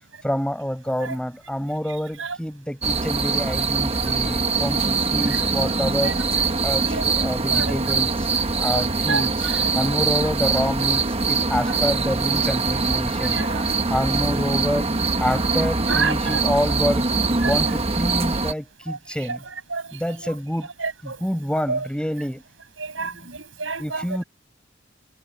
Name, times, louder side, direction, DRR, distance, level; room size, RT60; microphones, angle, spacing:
voice 1, 0.2-6.2 6.6-8.3 8.6-13.5 13.9-14.9 15.2-17.1 17.4-19.4 19.9-20.7 21.0-22.4 23.8-24.2, equal, 5° left, 6.6 m, -27 dB
sound 1, 2.8-18.5, right 3 dB, 30° right, 1.3 m, -23 dB
voice 2, 6.9-7.8 8.7-9.7 11.7-11.8 13.3-13.6 15.9-16.5 17.4-17.6 18.9-19.4 19.7-20.3 20.8-21.2 21.6-21.9 22.8-24.1, right 4 dB, 75° right, 8.0 m, -30 dB
head